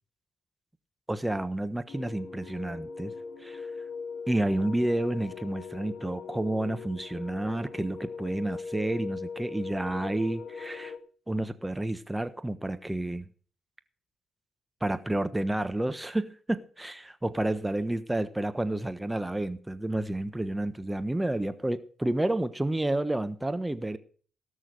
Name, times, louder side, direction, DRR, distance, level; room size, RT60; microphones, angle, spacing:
voice 1, 1.1-3.1 3.4-3.7 4.3-10.9 11.3-13.3 14.8-24.0, right 1 dB, 15° right, 1.2 m, -30 dB
sound 1, 1.9-11.0, left 5 dB, 60° left, 1.9 m, -40 dB
18.0 x 6.4 x 6.4 m
hypercardioid pair, 45°, 0 cm